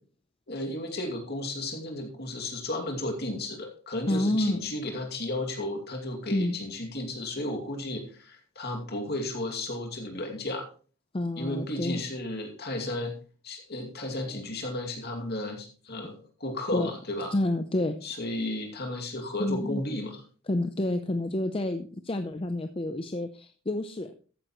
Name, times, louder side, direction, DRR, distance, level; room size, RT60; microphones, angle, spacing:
voice 1, 0.5-10.7 11.4-13.1 13.4-17.3 18.0-20.2, left 1 dB, 50° left, 3 dB, 2.4 m, -34 dB
voice 2, 4.1-4.6 6.3-6.5 11.1-12.0 16.7-16.9 17.3-18.0 19.4-19.8 20.5-24.1, left 1 dB, 25° left, 8 dB, 0.6 m, -29 dB
14.0 x 9.2 x 3.1 m, 0.39 s
head